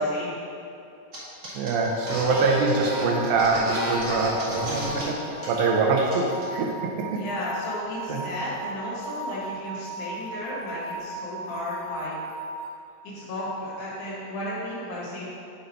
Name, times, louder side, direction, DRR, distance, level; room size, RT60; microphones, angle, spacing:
sound 1, 1.1-1.2 1.4-5.0 5.4-5.6 5.9-6.4, right 1 dB, 30° right, 1.5 m, -32 dB
voice 1, 1.5-7.2 8.1-8.2, right 3 dB, 85° right, -1 dB, 2.1 m, -24 dB
sound 2, 1.8-12.7, right 2 dB, 30° left, 0.9 m, -37 dB
voice 2, 7.1-12.2 13.0-15.3, left 1 dB, 85° left, -8 dB, 3.1 m, -34 dB
6.5 x 4.2 x 5.5 m, 2.6 s
omnidirectional pair, 3.4 m